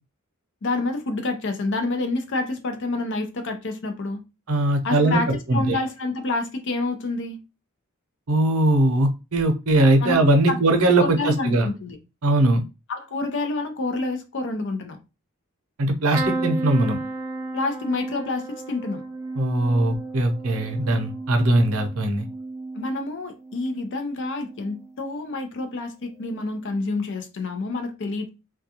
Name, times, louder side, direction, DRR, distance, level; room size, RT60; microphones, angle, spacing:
voice 1, 0.6-4.2 4.8-7.4 10.0-10.2 10.5-10.6 11.0-12.0 12.9-15.0 17.5-19.0 22.8-28.3, left 2 dB, 60° left, 0.6 m, -28 dB
voice 2, 4.5-5.8 8.3-11.7 12.2-12.6 15.8-17.0 19.4-22.3, right 2 dB, 80° right, 0.7 m, -20 dB
sound 1, 16.1-24.0 24.4-25.0 26.2-26.4 26.6-26.7, right 3 dB, 15° right, 0.4 m, -33 dB
2.3 x 2.3 x 2.8 m
head